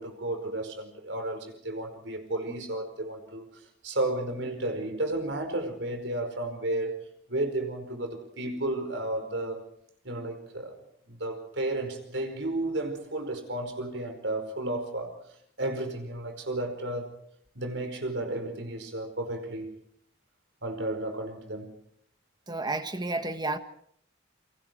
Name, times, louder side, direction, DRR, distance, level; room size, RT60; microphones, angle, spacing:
voice 1, 0.0-7.0 7.3-9.6 10.0-10.8 11.1-15.2 15.6-17.1 17.5-19.8 20.6-21.8, right 1 dB, 80° right, 4.9 m, -33 dB
voice 2, 22.5-23.6, right 2 dB, 25° right, 1.5 m, -31 dB
29.0 x 24.0 x 4.6 m
head